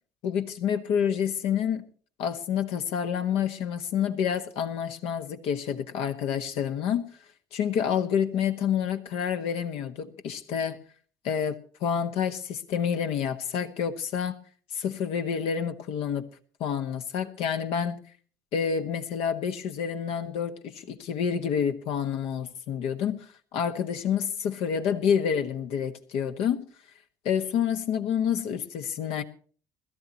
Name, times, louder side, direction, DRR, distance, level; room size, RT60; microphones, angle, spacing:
voice 1, 0.2-1.8 2.2-7.1 7.5-10.8 11.2-14.4 14.7-16.3 16.6-18.0 18.5-26.6 27.2-29.2, left 8 dB, 60° left, 1.4 m, -28 dB
21.5 x 13.5 x 2.9 m
hypercardioid pair, 60°, 11 cm